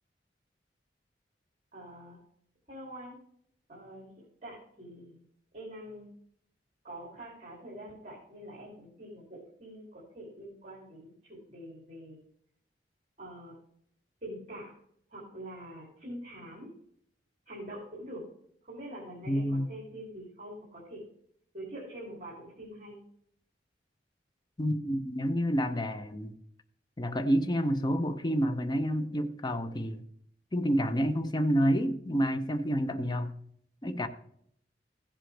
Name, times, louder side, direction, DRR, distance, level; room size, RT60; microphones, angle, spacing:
voice 1, 1.7-2.2 2.7-3.2 3.7-4.1 4.4-5.2 5.5-6.1 6.8-12.2 13.2-13.5 14.2-14.7 15.1-16.7 17.5-18.3 18.6-21.0 21.5-23.0, right 1 dB, 40° right, -5 dB, 3.0 m, -45 dB
voice 2, 19.3-19.7 24.6-26.3 27.0-30.0 30.5-33.3 33.8-34.1, equal, 25° left, 8 dB, 0.7 m, -29 dB
15.5 x 7.7 x 3.3 m, 0.67 s
head